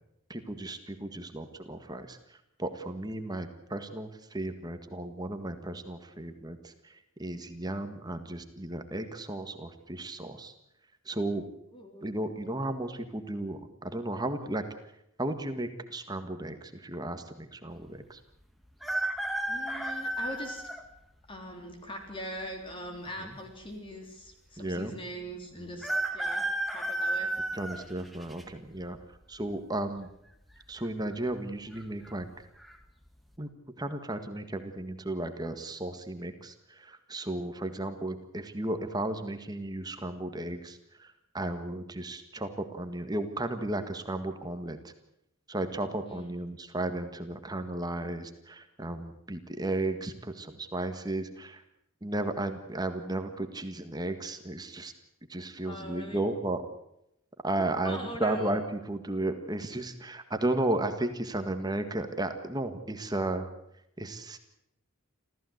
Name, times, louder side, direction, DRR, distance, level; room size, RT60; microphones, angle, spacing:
voice 1, 0.3-10.5 11.0-11.4 12.0-14.6 15.2-18.2 23.2-23.3 24.6-24.9 25.6-25.8 27.5-29.0 29.3-30.1 30.7-32.3 33.4-33.5 33.8-44.9 45.5-51.6 52.0-54.9 55.3-56.6 57.4-63.5 64.0-64.4, right 1 dB, 20° right, 8 dB, 1.7 m, -34 dB
voice 2, 11.7-12.1 19.5-20.7 21.3-25.9 26.1-26.4 26.7-27.3 46.1-46.3 55.7-56.3 57.6-58.5, equal, 25° left, 3 dB, 3.5 m, -41 dB
sound 1, 18.8-20.8 21.5-21.6 22.7-23.3 23.6-23.7 23.9-24.0 25.8-28.4 29.0-29.4 30.5-30.9 31.1-31.2 31.7-32.1 32.6-32.8, right 1 dB, ahead, 1.9 m, -32 dB
26.5 x 15.5 x 8.0 m, 0.80 s
head